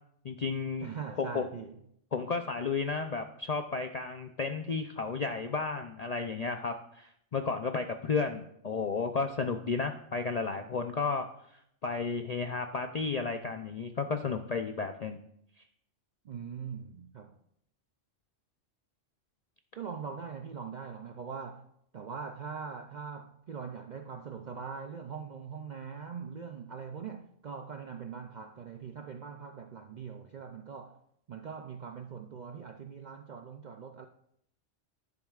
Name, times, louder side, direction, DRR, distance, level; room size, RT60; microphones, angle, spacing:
voice 1, 0.2-0.9 1.2-1.4 2.1-11.3 11.8-15.2, left 4 dB, 60° left, 0.4 m, -33 dB
voice 2, 0.8-1.8 16.2-17.4 19.8-21.7 21.9-31.0 31.3-34.1, right 6 dB, 65° right, 0.4 m, -42 dB
12.0 x 11.0 x 2.4 m
omnidirectional pair, 1.3 m